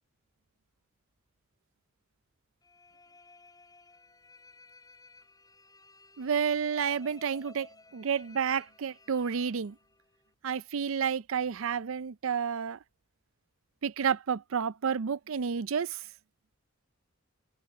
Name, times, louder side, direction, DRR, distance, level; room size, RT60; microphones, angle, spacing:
sound 1, 2.6-10.3, left 3 dB, 20° left, 5.2 m, -57 dB
voice 1, 6.2-7.7 7.9-9.8 10.4-12.8 13.8-16.0, right 7 dB, 70° right, 0.5 m, -30 dB
head